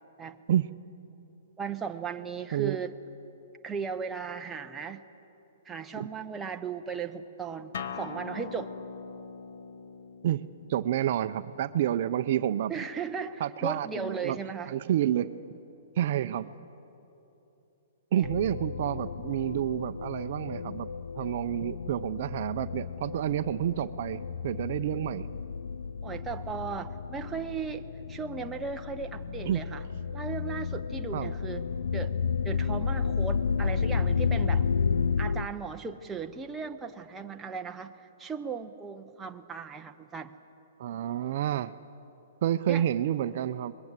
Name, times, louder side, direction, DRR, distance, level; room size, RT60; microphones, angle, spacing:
voice 1, 1.6-3.0 3.6-5.0 5.6-8.7 12.7-14.7 18.1-18.3 26.0-29.8 30.1-31.6 31.9-32.1 32.4-34.7 35.2-40.3 42.7-42.9, right 5 dB, 10° right, 5 dB, 0.8 m, -37 dB
Acoustic guitar, 7.7-12.9, left 5 dB, 65° left, 1.4 m, -43 dB
voice 2, 10.7-12.7 13.4-14.4 14.7-15.3 16.0-16.5 18.1-20.9 21.2-25.3 29.5-29.6 31.1-31.3 40.8-41.7 42.4-43.7, right 11 dB, 50° right, 12 dB, 0.6 m, -29 dB
sound 1, 18.2-35.5, left 5 dB, 85° left, 0.5 m, -32 dB
24.5 x 21.0 x 8.1 m, 3.0 s
hypercardioid pair, 160°, 0 cm